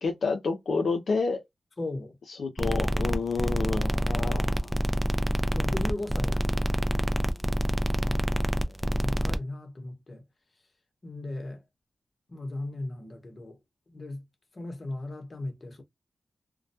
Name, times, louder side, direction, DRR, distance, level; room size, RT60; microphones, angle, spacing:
voice 1, 0.0-1.4 2.4-4.8 8.0-8.1, left 4 dB, 85° left, 0.5 m, -29 dB
voice 2, 1.8-2.2 3.4-3.5 5.5-7.0 8.5-10.2 11.0-11.6 12.3-13.6 13.9-14.2 14.5-15.8, left 2 dB, 50° left, 0.9 m, -37 dB
sound 1, 2.6-9.4, equal, ahead, 0.4 m, -27 dB
2.2 x 2.1 x 2.6 m
cardioid pair, 60°, 0 cm